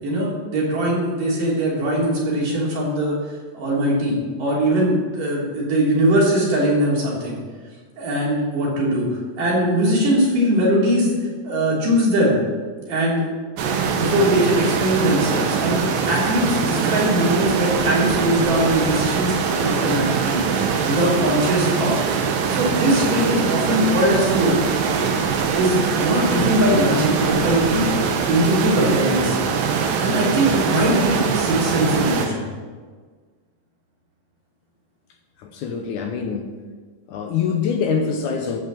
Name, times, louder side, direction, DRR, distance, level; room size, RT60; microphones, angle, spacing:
voice 1, 0.0-3.2 3.5-7.4 8.0-9.1 9.4-11.1 11.4-12.4 12.9-13.3 13.8-20.4 20.8-21.9 22.5-24.6 25.6-27.9 28.3-29.4 30.0-32.5, right 1 dB, 70° right, -5 dB, 4.8 m, -21 dB
sound 1, 13.6-32.3, right 6 dB, 85° right, 2.9 m, -22 dB
voice 2, 35.4-36.5 37.1-38.6, left 6 dB, 75° left, 4 dB, 2.1 m, -24 dB
14.0 x 5.5 x 7.5 m, 1.5 s
omnidirectional pair, 4.0 m